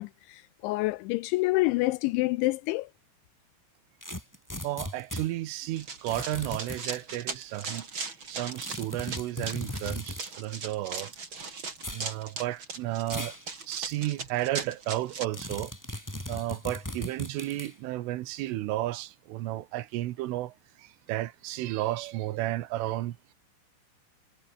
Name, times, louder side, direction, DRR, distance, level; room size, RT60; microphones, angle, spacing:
voice 1, 0.0-2.9, left 21 dB, 85° left, 2.7 m, -27 dB
sound 1, 4.0-5.3 6.1-7.0 8.5-10.3 11.8-12.1 13.1-13.4 13.9-14.0 15.3-17.7, left 1 dB, 5° left, 4.3 m, -38 dB
voice 2, 4.6-7.9 8.3-11.1 11.9-13.3 13.7-15.7 16.3-23.3, right 15 dB, 85° right, 3.8 m, -33 dB
Run, 5.8-15.3, right 4 dB, 25° right, 3.8 m, -38 dB
omnidirectional pair, 5.7 m